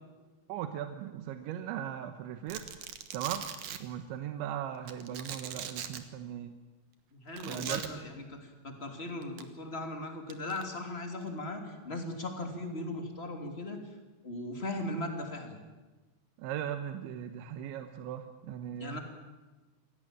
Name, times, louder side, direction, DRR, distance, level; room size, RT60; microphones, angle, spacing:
voice 1, 0.5-2.7 3.1-3.5 3.8-6.5 7.4-7.8 16.4-19.0, right 10 dB, 90° right, 8 dB, 3.4 m, -38 dB
Domestic sounds home sounds, 2.5-3.8 4.9-6.0 7.4-7.9 9.2-9.4 10.3-10.6, right 9 dB, 60° right, 2.3 m, -40 dB
voice 2, 7.1-13.9 14.2-15.6 18.8-19.0, left 1 dB, 15° left, 4 dB, 2.4 m, -38 dB
26.5 x 17.0 x 8.9 m, 1.2 s
omnidirectional pair, 5.2 m